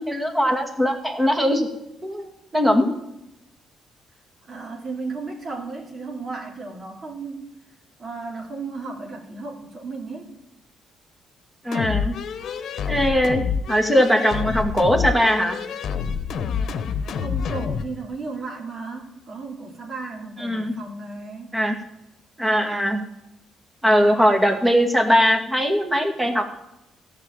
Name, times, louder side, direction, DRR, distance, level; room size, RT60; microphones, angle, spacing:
voice 1, 0.1-1.7 2.0-2.9 11.6-12.1 12.9-13.4 13.7-15.6 20.4-20.7 21.5-21.8 22.4-23.0 23.8-26.4, equal, 15° right, 4 dB, 2.2 m, -20 dB
voice 2, 4.4-7.5 8.0-10.3 17.2-21.5, right 3 dB, 45° right, 0 dB, 3.2 m, -34 dB
sound 1, 11.7-17.9, left 6 dB, 65° left, 1.0 m, -27 dB
14.0 x 5.8 x 8.9 m, 0.88 s
cardioid pair, 90°, 0 cm